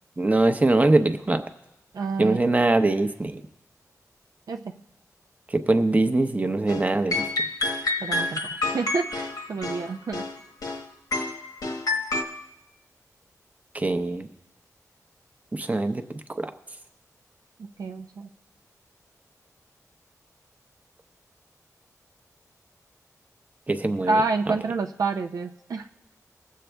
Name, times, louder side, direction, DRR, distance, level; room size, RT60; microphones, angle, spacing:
voice 1, 0.2-1.4 2.2-3.4 5.5-7.2 13.7-14.3 15.5-16.5 23.7-24.2 24.5-24.6, right 2 dB, 25° right, 8 dB, 0.8 m, -22 dB
voice 2, 1.9-2.4 4.5-4.7 8.0-10.2 17.6-18.3 24.1-25.9, right 3 dB, 80° right, 4 dB, 0.6 m, -28 dB
sound 1, 6.7-6.8 7.1-10.8 11.1-12.2, left 2 dB, 85° left, 1.2 m, -28 dB
20.5 x 7.5 x 3.4 m, 0.92 s
wide cardioid pair, 75°, 6 cm